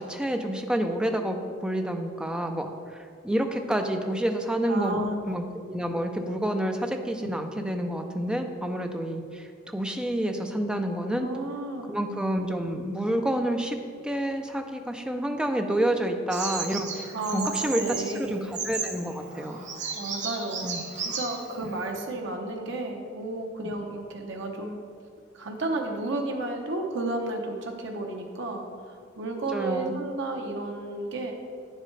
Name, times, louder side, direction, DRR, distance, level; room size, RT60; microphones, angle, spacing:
voice 1, 0.0-5.0 5.3-9.5 9.7-11.3 11.9-13.8 14.0-17.1 17.3-19.7 20.6-20.8 29.4-29.9, right 1 dB, 5° right, 5 dB, 0.5 m, -29 dB
voice 2, 4.7-5.2 11.1-12.0 17.1-18.4 19.9-24.8 25.3-28.7 29.2-31.3, right 2 dB, 65° right, 2 dB, 0.8 m, -32 dB
Bird vocalization bird call bird song, 16.3-21.9, right 5 dB, 40° right, 0.9 m, -35 dB
9.2 x 7.4 x 3.3 m, 2.2 s
head